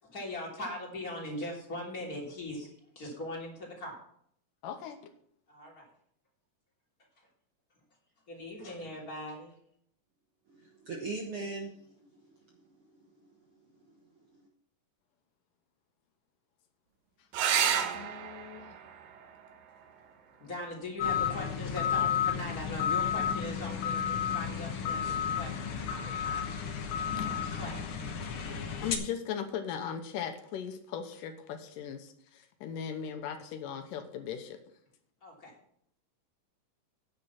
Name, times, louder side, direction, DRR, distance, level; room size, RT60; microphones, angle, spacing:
voice 1, 0.0-2.7 3.0-4.0 5.5-5.8 8.3-9.5 20.4-26.4 27.2-27.8 35.2-35.5, left 1 dB, 25° left, -2 dB, 3.4 m, -40 dB
voice 2, 4.6-5.0 17.9-18.8 27.2-27.6 28.8-34.6, left 8 dB, 80° left, 7 dB, 2.5 m, -38 dB
voice 3, 10.5-12.6 13.8-13.9 14.3-14.4, right 3 dB, 60° right, 2 dB, 1.5 m, -41 dB
sound 1, 17.3-22.4 24.2-24.9 28.3-28.4 28.8-28.9, right 8 dB, 85° right, 2.7 m, -34 dB
sound 2, 21.0-29.0, left 8 dB, 60° left, 1.5 m, -32 dB
9.9 x 8.2 x 5.7 m, 0.67 s
omnidirectional pair, 3.9 m